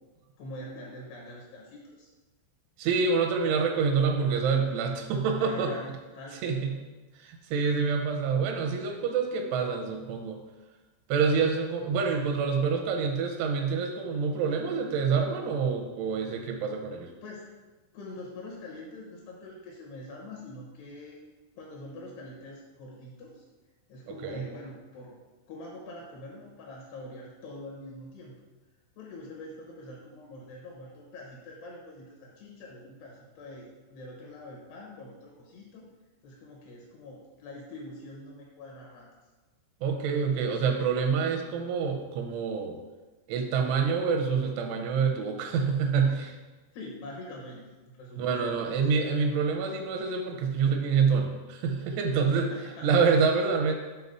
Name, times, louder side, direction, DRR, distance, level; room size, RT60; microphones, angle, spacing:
voice 1, 0.4-2.1 5.4-6.6 17.2-17.5 17.9-21.2 21.6-23.4 23.9-25.2 25.5-28.4 29.0-35.9 36.2-39.1 46.7-48.7 52.4-53.2, left 1 dB, 75° left, -2 dB, 2.7 m, -44 dB
voice 2, 2.8-5.7 6.4-6.7 7.2-10.4 11.1-17.1 24.2-24.4 39.8-42.8 43.3-46.4 48.2-52.5 52.8-53.7, right 5 dB, 85° right, 4 dB, 3.0 m, -27 dB
8.2 x 4.0 x 5.2 m, 1.2 s
omnidirectional pair, 5.6 m